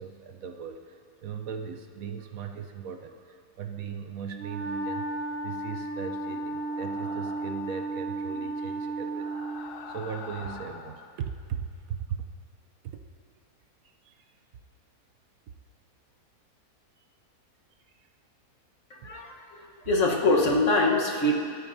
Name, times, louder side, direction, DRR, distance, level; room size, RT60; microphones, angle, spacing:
voice 1, 0.0-12.3 12.8-13.0 14.0-14.1 19.0-19.1, right 7 dB, 70° right, 5 dB, 1.0 m, -38 dB
Wind instrument woodwind instrument, 4.3-9.7, right 2 dB, 40° right, 1.4 m, -33 dB
sound 1, 6.5-7.7 9.0-11.2, left 5 dB, 85° left, 1.3 m, -44 dB
voice 2, 18.9-19.6 19.9-21.3, left 2 dB, 50° left, -1 dB, 1.5 m, -24 dB
24.5 x 8.8 x 2.7 m, 2.2 s
omnidirectional pair, 1.6 m